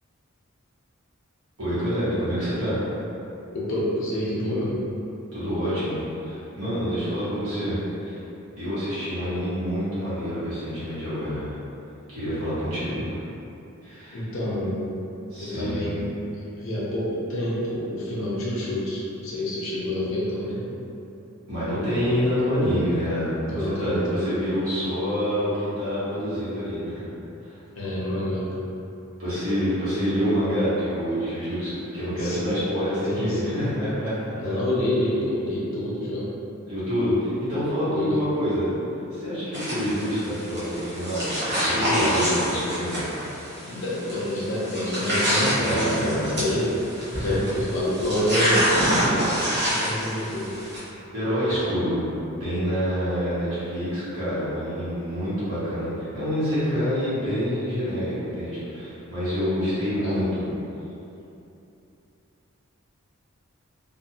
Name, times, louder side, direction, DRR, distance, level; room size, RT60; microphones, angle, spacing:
voice 1, 1.6-2.8 5.3-8.2 8.6-11.5 12.1-13.2 13.8-14.2 15.3-15.8 21.5-27.0 27.4-27.5 29.2-34.5 36.7-38.7 39.1-43.1 45.6-46.4 47.1-47.3 51.1-52.1 52.4-60.5, equal, 85° right, -13 dB, 1.4 m, -27 dB
voice 2, 3.5-4.8 14.1-14.8 15.4-16.0 16.6-20.7 23.4-24.3 27.8-28.6 32.2-32.4 33.0-33.7 34.4-36.3 37.9-38.2 41.7-42.3 43.6-46.7 47.1-48.8 49.7-50.5 59.9-60.2, left 1 dB, 65° left, -8 dB, 0.6 m, -27 dB
sound 1, 39.5-50.8, equal, 50° right, 0.9 m, -27 dB
2.6 x 2.4 x 2.8 m, 2.8 s
head